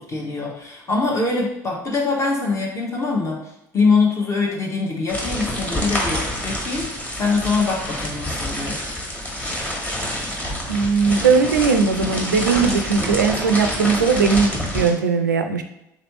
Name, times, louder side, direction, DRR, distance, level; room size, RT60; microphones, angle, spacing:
voice 1, 0.1-3.4 3.7-6.9 7.2-8.8, left 4 dB, 30° left, -1 dB, 0.9 m, -23 dB
sound 1, 5.1-14.9, left 1 dB, 15° left, 1.3 m, -27 dB
voice 2, 10.7-15.6, right 5 dB, 85° right, 7 dB, 0.4 m, -19 dB
3.6 x 3.2 x 3.0 m, 0.84 s
figure-of-eight pair, 65°, 10 cm